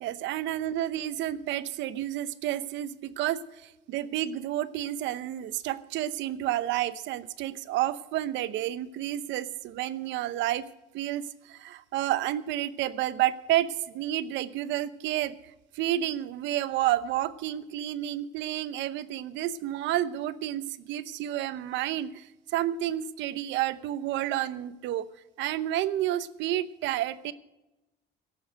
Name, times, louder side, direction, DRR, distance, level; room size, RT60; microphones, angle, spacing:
voice 1, 0.0-10.7 10.9-15.3 15.7-22.3 22.5-25.1 25.4-27.3, right 13 dB, 90° right, 14 dB, 0.9 m, -30 dB
17.5 x 7.1 x 7.6 m, 0.97 s
cardioid pair, 175°, 18 cm